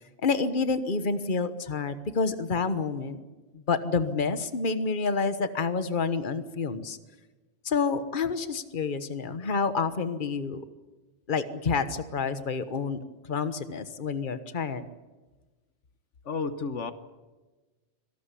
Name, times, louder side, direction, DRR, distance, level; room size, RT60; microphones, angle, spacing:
voice 1, 0.2-3.2 3.5-7.0 7.6-10.6 11.3-13.0 13.3-14.9, left 4 dB, 45° left, 11 dB, 1.4 m, -28 dB
voice 2, 16.2-16.9, left 4 dB, 85° left, 11 dB, 1.6 m, -31 dB
25.5 x 18.5 x 8.5 m, 1.2 s
omnidirectional pair, 1.2 m